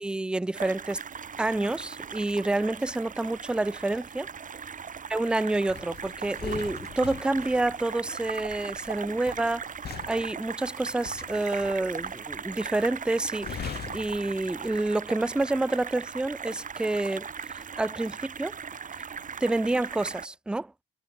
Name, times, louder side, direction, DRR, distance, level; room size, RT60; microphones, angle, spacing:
voice 1, 0.0-1.0 1.4-4.3 5.1-9.7 10.1-18.6 19.4-20.7, right 2 dB, 5° right, 0.3 m, -28 dB
sound 1, 0.5-20.3, right 6 dB, 40° right, 1.8 m, -39 dB
sound 2, 5.7-15.0 15.3-15.6, left 8 dB, 55° left, 2.0 m, -43 dB
cardioid pair, 90°, 20 cm